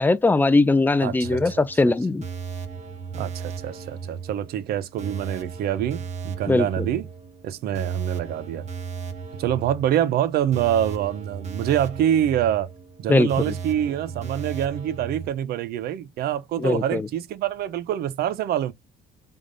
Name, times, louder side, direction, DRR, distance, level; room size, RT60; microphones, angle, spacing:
voice 1, 0.0-2.2 6.5-6.7 13.1-13.3 16.6-17.0, left 2 dB, 10° left, 0.4 m, -20 dB
voice 2, 1.0-1.9 3.1-7.1 7.4-8.7 9.4-12.7 13.0-18.7, right 10 dB, 65° right, 0.6 m, -26 dB
sound 1, 1.2-15.3, right 6 dB, 40° right, 1.3 m, -36 dB
5.1 x 3.5 x 2.5 m
cardioid pair, 110°, 17 cm